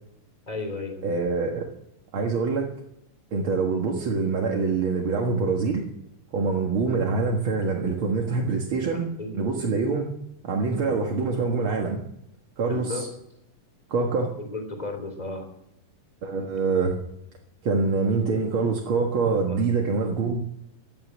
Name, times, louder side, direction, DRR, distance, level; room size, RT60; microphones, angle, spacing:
voice 1, 0.5-1.1 9.2-9.5 12.7-13.1 14.4-15.5 19.4-19.6, left 2 dB, 10° left, 5 dB, 3.2 m, -34 dB
voice 2, 1.0-1.6 2.1-2.7 3.3-5.8 6.3-9.1 9.3-10.1 10.4-12.0 12.6-13.1 13.9-14.3 16.2-17.0 17.6-20.4, right 4 dB, 45° right, 0 dB, 2.1 m, -25 dB
16.5 x 12.0 x 6.2 m, 0.79 s
omnidirectional pair, 3.9 m